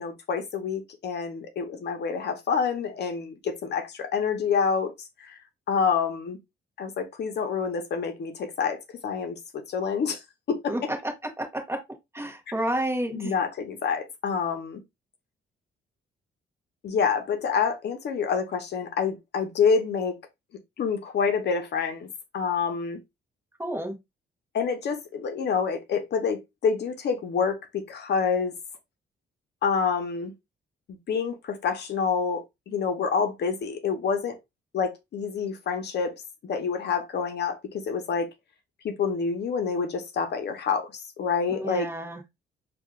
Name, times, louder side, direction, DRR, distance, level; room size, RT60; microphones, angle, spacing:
voice 1, 0.0-4.9 5.2-5.4 5.7-6.4 6.8-10.2 10.5-10.9 13.1-14.8 16.8-20.2 20.8-22.1 22.3-23.0 24.5-28.5 29.6-30.3 30.9-34.4 34.7-36.1 36.4-38.3 38.8-41.9, left 6 dB, 60° left, 0.8 m, -27 dB
voice 2, 10.7-11.1 11.4-11.8 12.1-13.3 23.6-24.0 41.5-42.2, right 1 dB, 10° right, 1.2 m, -30 dB
4.6 x 2.5 x 2.4 m
cardioid pair, 90°, 20 cm